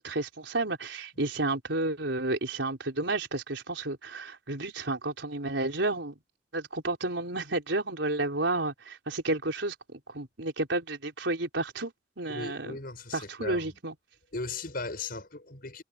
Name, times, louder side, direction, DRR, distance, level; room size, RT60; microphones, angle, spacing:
voice 1, 0.0-6.1 6.5-11.9 12.2-12.8 13.1-13.9, right 2 dB, 85° right, 4.2 m, -31 dB
voice 2, 12.3-13.8 14.3-15.8, left 3 dB, 55° left, 6.4 m, -37 dB
head